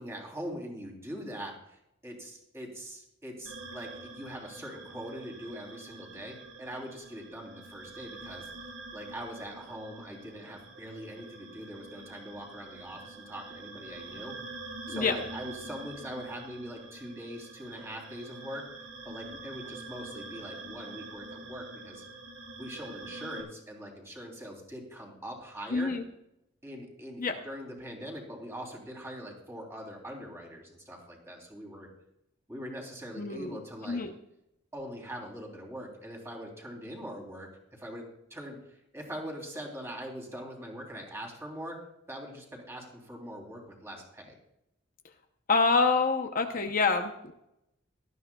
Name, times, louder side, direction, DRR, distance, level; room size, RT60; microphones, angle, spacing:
voice 1, 0.0-14.3 14.9-18.6 19.0-22.0 22.6-25.9 26.6-31.9 32.5-34.0 34.7-38.0 38.3-41.8 42.1-44.4, equal, 15° right, 0 dB, 3.1 m, -42 dB
sound 1, 3.5-23.4, right 3 dB, 90° right, 3.5 m, -46 dB
voice 2, 25.7-26.0 27.2-27.4 33.2-33.6 33.9-34.1 45.5-47.3, left 4 dB, 45° left, 5 dB, 0.7 m, -26 dB
17.5 x 13.0 x 2.3 m, 0.82 s
head